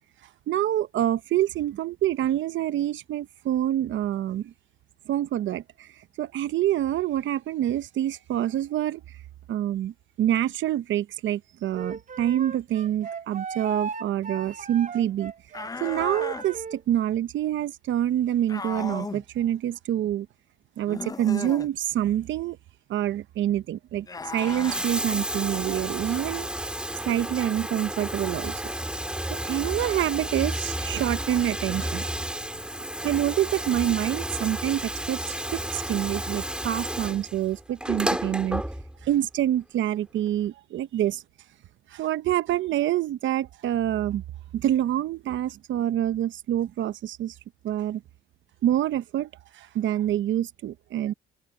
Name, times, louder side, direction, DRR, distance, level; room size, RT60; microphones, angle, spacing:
voice 1, 0.5-4.5 5.1-5.9 6.2-9.0 9.5-15.3 15.8-20.3 20.8-22.6 22.9-24.1 24.3-26.5 27.0-28.8 29.3-32.1 33.0-35.2 35.5-38.6 39.0-41.2 41.9-44.2 44.5-47.3 47.6-48.0 48.6-49.3 49.5-51.1, right 12 dB, 75° right, 0.9 m, -26 dB
Wind instrument woodwind instrument, 11.7-16.8, right 5 dB, 40° right, 3.7 m, -36 dB
sound 1, 15.5-16.5 18.5-19.2 20.9-21.7 24.0-24.9, left 4 dB, 20° left, 0.5 m, -35 dB
Bathtub (filling or washing), 24.2-39.2 40.3-40.4, right 1 dB, 5° right, 2.9 m, -32 dB
open air
cardioid pair, 90°, 20 cm